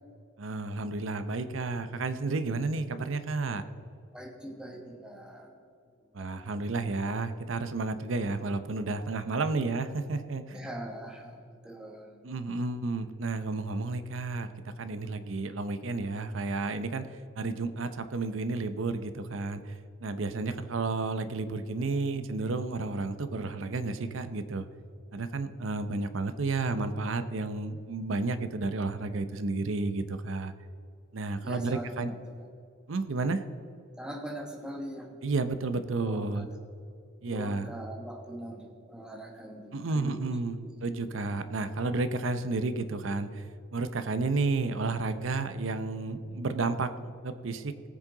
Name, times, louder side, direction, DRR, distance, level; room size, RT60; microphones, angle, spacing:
voice 1, 0.4-3.6 6.1-10.6 12.2-14.5 14.8-24.7 25.1-30.5 31.1-32.1 32.9-33.4 35.2-36.5 37.2-37.7 39.7-43.5 43.7-47.7, right 3 dB, 65° right, 11 dB, 0.6 m, -31 dB
voice 2, 4.1-5.6 6.2-6.5 10.5-12.2 31.4-32.2 34.0-35.2 36.0-36.5 37.2-40.2 40.6-40.8, right 1 dB, 5° right, 2 dB, 1.2 m, -42 dB
17.5 x 7.4 x 3.9 m, 2.6 s
head